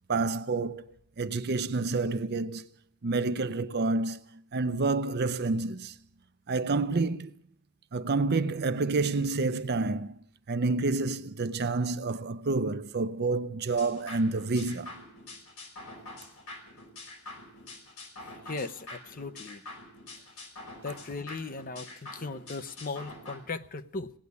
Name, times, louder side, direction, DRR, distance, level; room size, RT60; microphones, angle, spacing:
voice 1, 0.1-0.8 1.2-2.7 3.0-5.9 6.5-7.3 7.9-10.2 10.5-15.0, right 3 dB, 50° right, 0.6 m, -29 dB
sound 1, 13.8-23.4, left 2 dB, 85° left, 4.7 m, -46 dB
voice 2, 18.2-19.6 20.8-24.1, left 3 dB, 40° left, 0.7 m, -38 dB
18.0 x 9.8 x 8.2 m
head